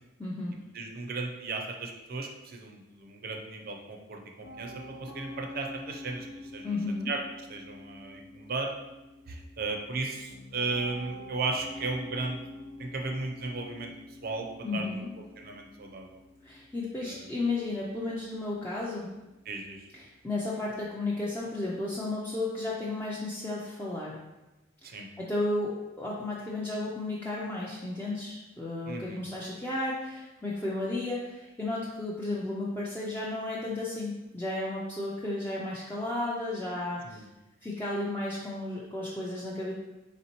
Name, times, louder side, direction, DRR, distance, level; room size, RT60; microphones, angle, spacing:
voice 1, 0.2-0.6 6.6-7.1 14.6-15.1 16.4-19.1 19.9-24.2 24.8-37.2 37.6-39.7, left 2 dB, 10° left, -6 dB, 0.4 m, -33 dB
voice 2, 0.7-4.7 5.0-6.8 7.1-7.2 7.5-8.7 9.3-12.4 12.8-15.1 15.4-16.2 17.0-17.2 19.5-19.9 24.8-25.1 28.9-29.2 37.0-37.3, right 3 dB, 50° right, 2 dB, 0.5 m, -35 dB
Piano, 4.4-21.6, left 1 dB, 55° left, 0.6 m, -48 dB
4.1 x 3.4 x 2.9 m, 1.0 s
head